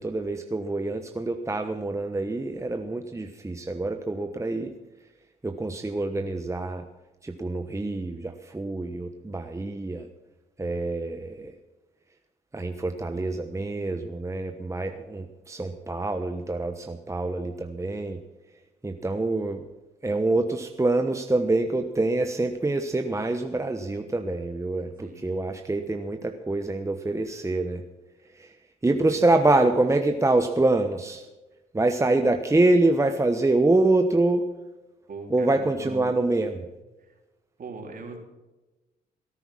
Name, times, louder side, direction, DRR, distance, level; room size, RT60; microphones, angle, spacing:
voice 1, 0.0-4.7 5.4-6.9 7.2-10.1 10.6-11.5 12.5-18.2 18.8-19.6 20.0-27.8 28.3-28.6 28.8-31.3 31.7-34.5 35.3-36.7, right 2 dB, 15° right, 6 dB, 1.1 m, -25 dB
voice 2, 25.0-25.6 29.0-29.2 35.1-36.1 37.0-37.1 37.6-38.2, right 3 dB, 50° right, 2 dB, 3.8 m, -41 dB
17.0 x 9.8 x 6.3 m, 1.1 s
supercardioid pair, 60°, 18 cm